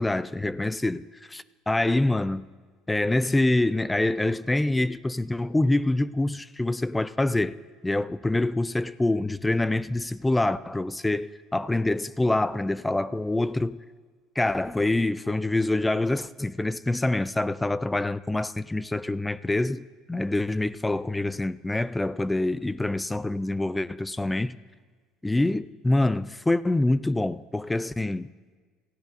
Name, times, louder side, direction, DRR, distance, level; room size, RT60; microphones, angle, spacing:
voice 1, 0.0-2.5 2.9-7.5 7.8-13.8 14.4-24.6 25.2-28.3, left 2 dB, 10° left, 0.4 m, -26 dB
27.5 x 14.5 x 2.6 m
supercardioid pair, 80°, 0 cm